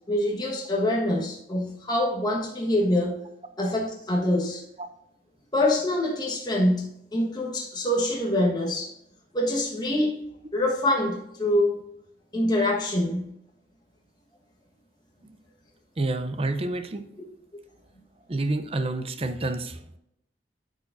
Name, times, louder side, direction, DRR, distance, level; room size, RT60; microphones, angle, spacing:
voice 1, 0.1-3.2 3.6-4.6 5.5-8.9 9.3-10.2 10.5-11.8 12.3-13.3, left 1 dB, 25° left, -2 dB, 1.3 m, -25 dB
voice 2, 16.0-17.1 18.3-19.8, right 2 dB, 35° right, 9 dB, 0.6 m, -29 dB
12.0 x 4.8 x 2.6 m, 0.78 s
head